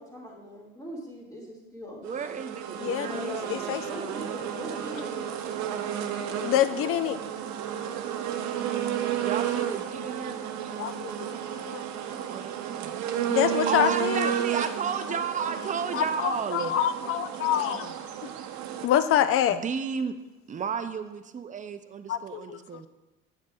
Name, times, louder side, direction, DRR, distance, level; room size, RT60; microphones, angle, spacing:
voice 1, 0.0-2.2 3.1-3.6 3.8-5.3, left 1 dB, 10° left, -3 dB, 2.1 m, -40 dB
voice 2, 2.0-3.9 9.2-10.4 12.3-16.8 19.5-20.2 20.5-22.9, right 6 dB, 25° right, 9 dB, 0.5 m, -33 dB
sound 1, 2.0-18.9, right 9 dB, 60° right, 0.8 m, -32 dB
voice 3, 2.8-3.8 6.4-7.2 10.8-11.3 11.5-11.8 13.3-14.3 15.9-17.9 18.8-19.6 22.1-22.6, left 11 dB, 45° left, 13 dB, 0.5 m, -26 dB
7.7 x 7.2 x 2.4 m, 1.1 s
hypercardioid pair, 80°, 32 cm